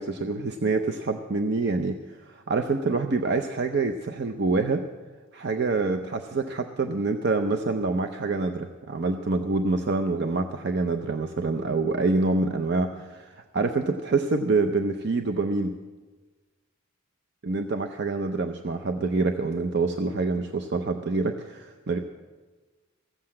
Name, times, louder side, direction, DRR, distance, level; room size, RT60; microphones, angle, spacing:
voice 1, 0.0-4.8 5.3-15.7 17.4-22.0, right 3 dB, 55° right, 6 dB, 0.6 m, -26 dB
14.5 x 7.8 x 8.6 m, 1.3 s
head